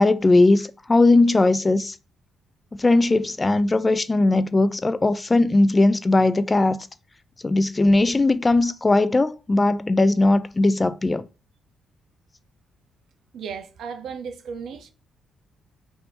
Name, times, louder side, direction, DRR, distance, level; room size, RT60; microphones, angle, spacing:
voice 1, 0.0-2.0 2.7-6.9 7.4-11.3, left 2 dB, 20° left, 0.4 m, -19 dB
voice 2, 13.3-14.9, right 6 dB, 70° right, 0.6 m, -35 dB
3.4 x 2.7 x 4.1 m
cardioid pair, 90°, 0 cm